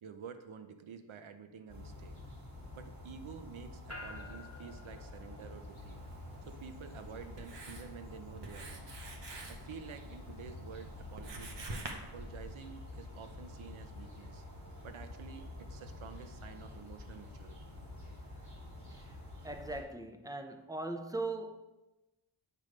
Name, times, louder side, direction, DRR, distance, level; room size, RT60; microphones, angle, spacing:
voice 1, 0.0-2.2 2.7-6.0 6.5-8.9 9.5-14.4 14.8-17.7 18.9-19.0, right 6 dB, 80° right, 0.7 m, -50 dB
sound 1, 1.7-19.8, left 2 dB, 35° right, 2.0 m, -48 dB
sound 2, 3.9-18.2, left 2 dB, 30° left, 1.2 m, -58 dB
Writing, 5.7-11.9, right 2 dB, 60° right, 1.1 m, -48 dB
voice 2, 19.4-21.7, right 2 dB, 10° right, 0.6 m, -40 dB
8.5 x 3.2 x 5.2 m
wide cardioid pair, 65°, 48 cm